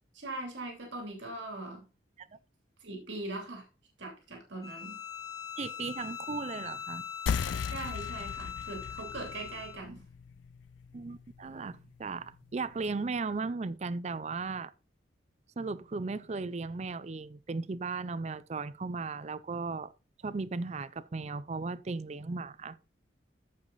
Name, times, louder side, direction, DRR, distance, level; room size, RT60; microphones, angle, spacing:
voice 1, 0.1-1.8 2.8-3.6 4.0-5.0 7.7-10.0, right 2 dB, 75° right, 2.8 m, -41 dB
Bowed string instrument, 4.6-9.8, left 8 dB, 20° left, 0.8 m, -41 dB
voice 2, 5.6-7.0 10.9-14.7 15.6-19.9 20.2-22.8, right 4 dB, 35° right, 0.4 m, -36 dB
sound 1, 7.3-12.4, left 6 dB, 80° left, 0.4 m, -38 dB
14.0 x 4.9 x 4.0 m
head